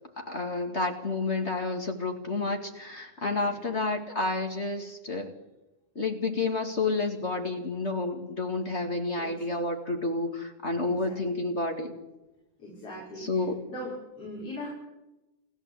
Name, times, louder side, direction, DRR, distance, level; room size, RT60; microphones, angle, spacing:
voice 1, 0.2-5.3 6.0-11.9 13.2-13.6, left 3 dB, 25° left, 4 dB, 1.9 m, -30 dB
voice 2, 3.2-3.8 8.8-9.4 10.8-11.4 12.6-13.4 13.7-14.7, left 1 dB, 45° left, -5 dB, 6.8 m, -41 dB
29.5 x 14.5 x 8.4 m, 1.0 s
omnidirectional pair, 3.8 m